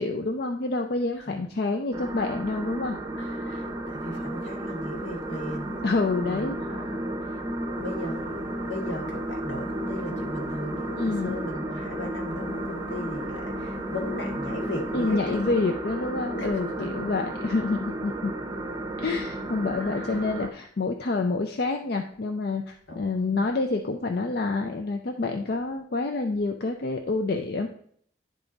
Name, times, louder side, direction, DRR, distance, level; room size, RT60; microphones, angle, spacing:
voice 1, 0.0-3.0 5.8-6.6 10.9-11.4 14.9-18.3 19.0-27.7, left 3 dB, 55° left, 0.5 m, -28 dB
sound 1, 1.9-20.5, right 1 dB, 20° right, 0.7 m, -33 dB
voice 2, 3.2-5.8 6.3-7.4 7.8-15.6 16.3-17.0 19.7-20.2 22.9-23.5, left 1 dB, 80° left, 1.7 m, -37 dB
10.5 x 3.7 x 3.9 m
head